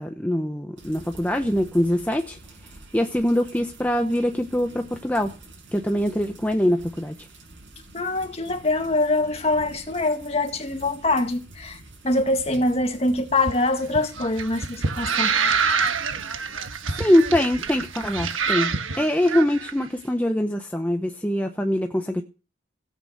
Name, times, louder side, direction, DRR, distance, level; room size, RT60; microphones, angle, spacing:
voice 1, 0.0-2.4 2.9-5.3 5.7-7.1 17.0-22.2, equal, 10° left, 0.8 m, -23 dB
sound 1, 0.8-18.5, right 2 dB, 70° right, 6.2 m, -47 dB
voice 2, 7.9-15.3, left 2 dB, 30° left, 1.9 m, -24 dB
sound 2, 13.4-19.7, right 5 dB, 90° right, 1.3 m, -26 dB
16.0 x 9.0 x 6.5 m
head